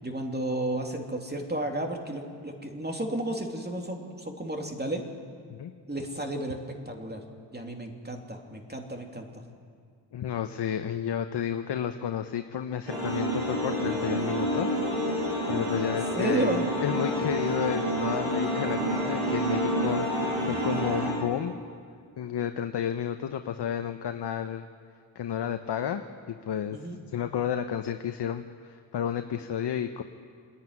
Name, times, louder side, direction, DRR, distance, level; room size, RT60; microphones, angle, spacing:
voice 1, 0.0-5.0 5.9-6.6 6.8-7.2 7.5-9.4 15.9-16.7 26.7-27.0, right 1 dB, 20° right, 3 dB, 2.9 m, -32 dB
voice 2, 10.1-14.8 15.5-16.5 16.8-21.6 22.2-24.6 25.1-26.8 27.1-30.0, left 9 dB, 60° left, 7 dB, 0.9 m, -31 dB
sound 1, 12.9-21.1, equal, 85° right, 6.8 m, -28 dB
26.0 x 10.5 x 9.7 m, 2.2 s
cardioid pair, 60°, 47 cm